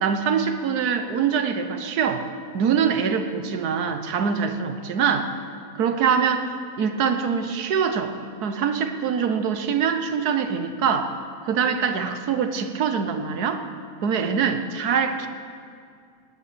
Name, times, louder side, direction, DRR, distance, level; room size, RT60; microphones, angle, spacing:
voice 1, 0.0-2.2 2.5-5.3 5.8-8.1 8.4-11.1 11.4-13.6 14.0-15.3, right 6 dB, 85° right, 8 dB, 1.5 m, -24 dB
17.0 x 9.7 x 6.8 m, 2.3 s
omnidirectional pair, 1.6 m